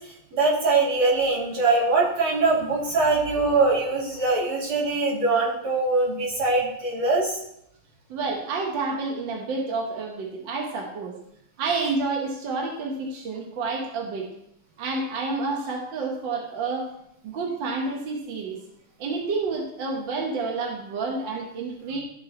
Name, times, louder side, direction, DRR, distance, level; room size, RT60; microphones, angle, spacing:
voice 1, 0.3-7.4, right 3 dB, 85° right, -6 dB, 3.4 m, -22 dB
voice 2, 8.1-11.2 11.6-14.3 14.8-16.9 17.2-18.6 19.0-22.0, right 3 dB, 65° right, -1 dB, 1.8 m, -29 dB
12.5 x 4.5 x 4.4 m, 0.76 s
omnidirectional pair, 2.3 m